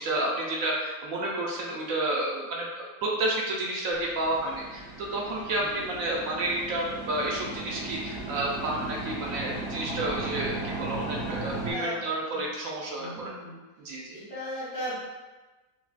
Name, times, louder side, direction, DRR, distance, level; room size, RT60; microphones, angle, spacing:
voice 1, 0.0-13.3 13.8-14.2, right 1 dB, 70° right, -2 dB, 0.9 m, -30 dB
sound 1, 3.9-11.7, right 2 dB, 35° right, 0.7 m, -36 dB
voice 2, 11.5-12.4 13.0-13.6 14.1-14.9, equal, 70° left, -9 dB, 2.0 m, -37 dB
4.7 x 2.2 x 2.4 m, 1.2 s
omnidirectional pair, 1.6 m